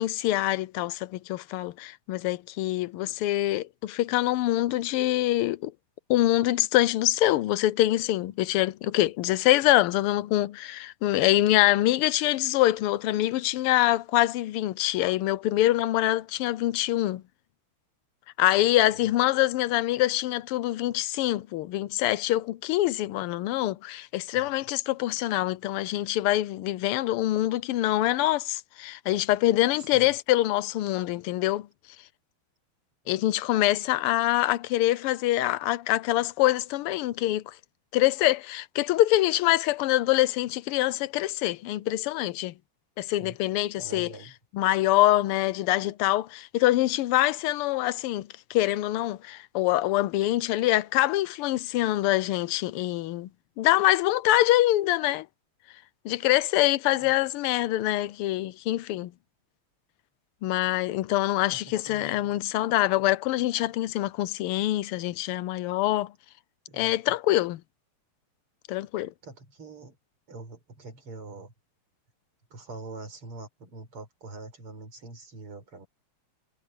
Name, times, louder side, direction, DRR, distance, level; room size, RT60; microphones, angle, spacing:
voice 1, 0.0-5.7 6.1-17.2 18.4-31.7 33.1-37.5 37.9-42.5 43.0-44.1 44.5-53.3 53.6-55.3 56.0-59.1 60.4-66.1 66.7-67.6 68.7-69.1, left 15 dB, 90° left, 1.6 m, -25 dB
voice 2, 29.8-30.1 43.2-43.4 43.8-44.3 57.0-57.1 61.5-62.2 66.7-67.0 69.2-70.0 70.3-71.5 72.5-75.9, right 3 dB, 90° right, 5.7 m, -44 dB
omnidirectional pair, 2.4 m